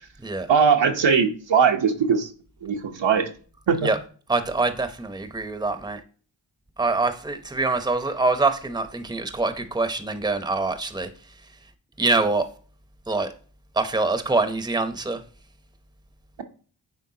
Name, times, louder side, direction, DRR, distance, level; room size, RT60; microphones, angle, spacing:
voice 1, 0.5-2.3 2.6-3.3 3.7-3.9, right 6 dB, 70° right, 1.0 m, -20 dB
voice 2, 4.3-6.0 6.8-11.1 12.0-12.5 13.1-13.3 13.8-15.2, right 3 dB, 10° right, 0.8 m, -24 dB
9.6 x 3.5 x 2.8 m
cardioid pair, 40°, 47 cm